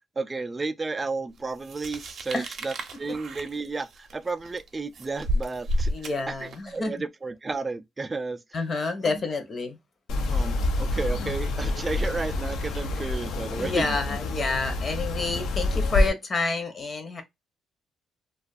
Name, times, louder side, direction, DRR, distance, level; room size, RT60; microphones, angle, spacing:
voice 1, 0.2-8.4 9.0-9.2 10.3-13.9, right 3 dB, 25° right, 0.3 m, -32 dB
sound 1, 1.6-6.8, equal, 60° right, 0.6 m, -31 dB
voice 2, 5.9-6.9 8.5-9.8 13.6-17.2, left 3 dB, 40° left, 0.7 m, -29 dB
sound 2, 10.1-16.1, left 2 dB, 75° left, 0.4 m, -27 dB
2.5 x 2.3 x 2.4 m
cardioid pair, 90°, 0 cm